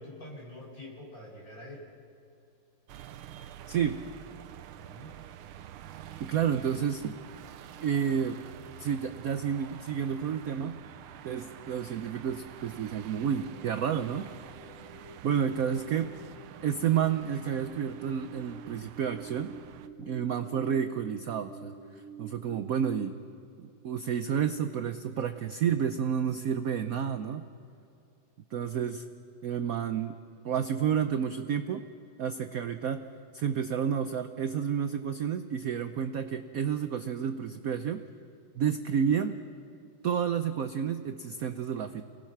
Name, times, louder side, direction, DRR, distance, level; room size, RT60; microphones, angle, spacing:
voice 1, 0.0-1.9 4.8-5.1, left 1 dB, 40° left, -1 dB, 5.5 m, -45 dB
sound 1, 2.9-19.9, right 11 dB, 90° right, 1.6 m, -48 dB
voice 2, 3.7-4.0 6.2-7.1 7.8-8.4 8.8-10.8 11.2-14.3 15.2-16.2 16.6-19.6 20.0-23.2 23.6-27.4 28.5-29.0 29.4-30.1 30.4-31.9 32.2-33.1 33.3-38.1 38.5-39.4 40.0-42.0, right 8 dB, 70° right, 8 dB, 0.8 m, -30 dB
sound 2, 13.1-23.1, right 2 dB, 35° right, 3.1 m, -49 dB
29.5 x 19.0 x 5.8 m, 2.5 s
omnidirectional pair, 2.3 m